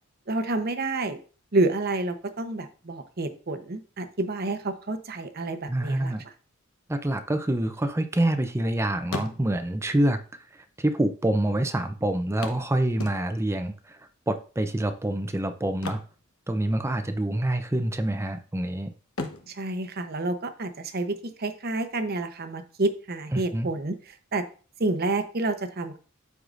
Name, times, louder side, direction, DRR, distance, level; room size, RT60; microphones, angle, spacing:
voice 1, 0.3-1.2 1.5-6.1 19.5-23.9 24.3-24.4 24.8-26.0, right 2 dB, 50° right, 9 dB, 0.9 m, -29 dB
voice 2, 5.7-6.2 6.9-10.2 10.5-16.0 16.5-18.9 23.3-23.7, right 1 dB, 15° right, 8 dB, 0.5 m, -26 dB
sound 1, 7.7-8.7 9.0-9.8 10.8-10.9 11.1-11.2 12.4-13.6 15.7-17.0 17.2-17.5 18.0-18.6 19.1-20.8 22.8-22.9 23.4-23.5, left 3 dB, 80° left, 1.0 m, -39 dB
13.5 x 4.7 x 2.5 m, 0.38 s
head